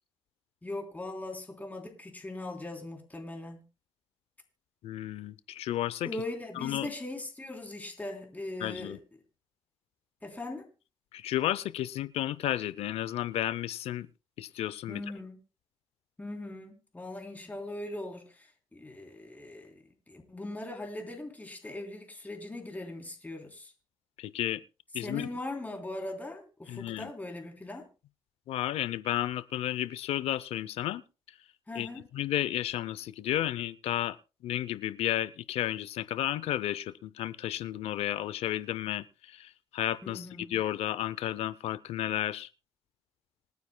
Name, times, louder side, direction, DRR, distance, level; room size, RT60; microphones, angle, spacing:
voice 1, 0.6-3.6 6.0-9.0 10.2-10.7 14.9-15.4 16.2-19.7 20.1-23.7 25.0-27.9 31.7-32.1 40.0-40.5, left 2 dB, 15° left, 3.4 m, -40 dB
voice 2, 4.8-6.1 6.6-6.9 8.6-9.0 11.1-14.1 14.4-15.0 24.2-24.6 24.9-25.3 26.7-27.1 28.5-31.0 31.7-34.2 34.4-42.5, left 12 dB, 85° left, 0.5 m, -32 dB
26.5 x 9.5 x 2.2 m
cardioid pair, 90°, 10 cm